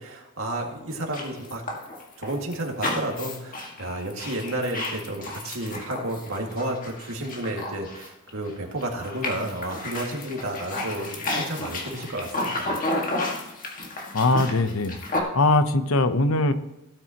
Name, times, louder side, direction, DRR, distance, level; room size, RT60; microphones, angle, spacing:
voice 1, 0.0-1.6 2.2-12.8, right 1 dB, 75° right, 1 dB, 2.1 m, -31 dB
sound 1, 0.9-8.5 8.8-15.2, left 2 dB, 40° left, 1.9 m, -32 dB
voice 2, 14.1-15.0 15.3-16.5, left 2 dB, 90° left, 10 dB, 0.8 m, -21 dB
17.0 x 8.7 x 3.0 m, 0.91 s
head